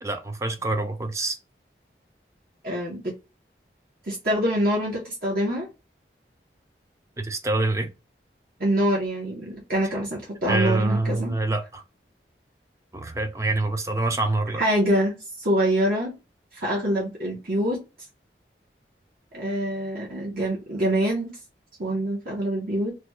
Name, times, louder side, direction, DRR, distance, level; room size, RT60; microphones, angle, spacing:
voice 1, 0.0-1.4 7.2-7.9 10.5-11.8 12.9-14.6, right 2 dB, 15° right, 0.4 m, -26 dB
voice 2, 2.6-3.1 4.1-5.7 8.6-11.4 14.6-16.1 16.5-17.8 19.3-21.3 21.8-22.9, right 1 dB, 55° right, 0.9 m, -25 dB
3.1 x 2.2 x 3.1 m
head